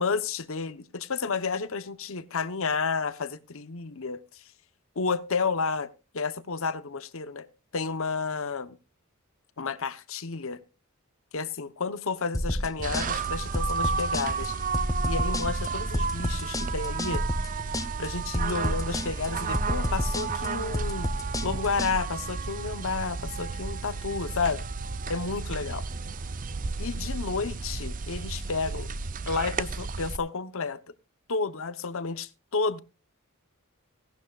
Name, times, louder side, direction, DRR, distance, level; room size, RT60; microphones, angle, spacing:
voice 1, 0.0-4.4 5.0-5.9 6.1-7.5 7.7-8.8 9.6-10.6 11.3-14.6 15.1-17.2 18.0-21.1 21.4-24.6 25.1-25.8 26.8-28.9 29.3-30.9 31.3-32.8, left 4 dB, 65° left, 0.9 m, -31 dB
sound 1, 12.3-21.9, left 1 dB, 15° left, 0.8 m, -30 dB
sound 2, 12.8-30.2, right 4 dB, 40° right, 0.5 m, -32 dB
17.5 x 11.5 x 2.4 m
head